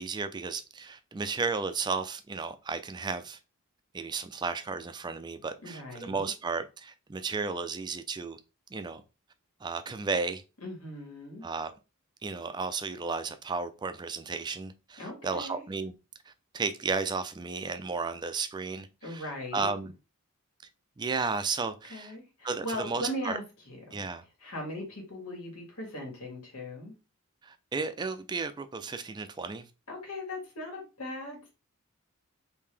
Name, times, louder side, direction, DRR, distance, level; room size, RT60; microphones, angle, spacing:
voice 1, 0.0-3.4 3.9-8.4 8.7-9.0 9.6-10.4 11.4-11.7 12.2-15.9 16.3-19.2 19.5-19.9 21.0-22.1 22.4-23.4 23.9-24.2 27.4-29.6, right 4 dB, 20° right, 0.3 m, -33 dB
voice 2, 5.6-6.3 10.6-11.5 15.0-15.6 19.0-19.7 21.9-24.1 24.4-26.9 29.9-31.5, left 1 dB, 85° left, 1.7 m, -39 dB
3.6 x 2.7 x 3.3 m
head